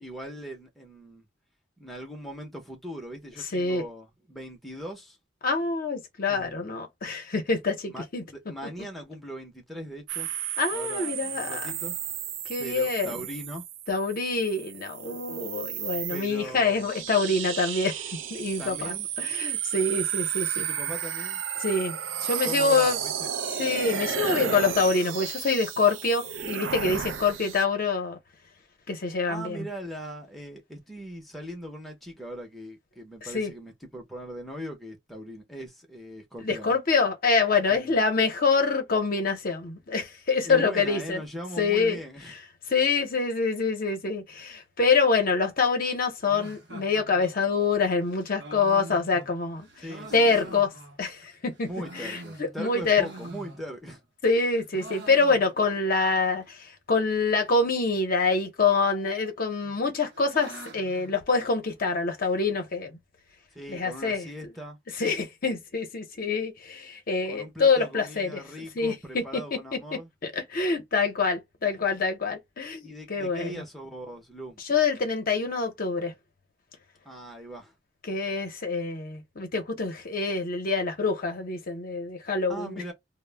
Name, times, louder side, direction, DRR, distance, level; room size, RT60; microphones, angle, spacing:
voice 1, 0.0-1.3 1.8-5.2 6.3-6.8 7.9-10.3 10.7-11.9 12.6-13.6 16.1-17.1 18.6-19.1 20.5-21.4 22.5-23.3 29.3-36.7 37.7-37.9 40.4-42.4 49.8-50.6 51.6-54.0 63.5-64.8 67.3-70.1 72.8-74.6 77.0-77.7 82.5-82.9, equal, ahead, 0.6 m, -40 dB
voice 2, 3.5-3.8 5.4-8.2 10.6-11.7 12.5-13.1 13.9-18.0 18.3-20.6 21.6-23.0 23.6-28.2 28.9-29.7 33.2-33.5 36.4-41.2 41.6-42.0 42.7-49.7 50.1-50.7 51.0-51.7 51.9-53.1 54.2-63.0 63.7-64.3 64.9-68.4 68.8-69.8 70.2-73.6 74.6-76.1 78.0-82.8, left 4 dB, 50° left, 0.7 m, -26 dB
sound 1, 10.1-27.6, right 9 dB, 90° right, 0.4 m, -33 dB
sound 2, 46.3-51.3 51.6-54.0 54.3-55.9 56.1-56.2 56.4-56.5 57.2-57.6 58.6-59.2 59.6-62.0, right 2 dB, 65° right, 0.7 m, -45 dB
2.0 x 2.0 x 3.2 m
head